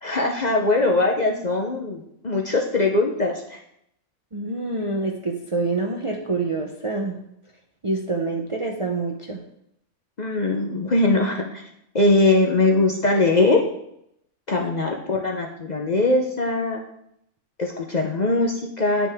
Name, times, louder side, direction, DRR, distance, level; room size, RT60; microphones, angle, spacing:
voice 1, 0.0-3.6 10.2-11.6 11.9-13.6 14.5-16.8 17.6-19.1, left 2 dB, 40° left, 1 dB, 0.7 m, -21 dB
voice 2, 4.3-7.2 7.8-9.4, right 3 dB, 30° right, 1 dB, 0.6 m, -26 dB
9.3 x 6.0 x 3.5 m, 0.75 s
omnidirectional pair, 1.4 m